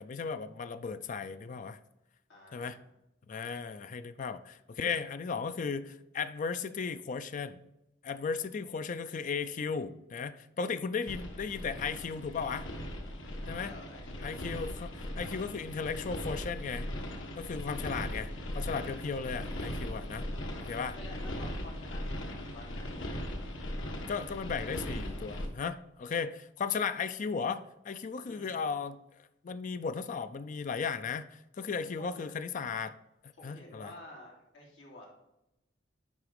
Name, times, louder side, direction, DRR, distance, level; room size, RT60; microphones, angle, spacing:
voice 1, 0.0-1.8 2.5-2.8 3.3-7.6 8.0-12.7 13.5-13.7 14.2-16.9 17.4-18.3 18.5-20.3 20.6-21.0 24.1-29.0 29.4-33.0 33.2-33.9, left 5 dB, 40° left, 11 dB, 0.4 m, -36 dB
voice 2, 2.3-2.9 3.3-3.5 13.6-14.4 20.9-23.3 28.2-28.5 32.0-32.3 33.4-35.1, left 1 dB, 65° left, -3 dB, 3.2 m, -51 dB
sound 1, 11.1-25.5, left 1 dB, 80° left, 1.4 m, -39 dB
10.5 x 4.0 x 5.1 m, 0.91 s
head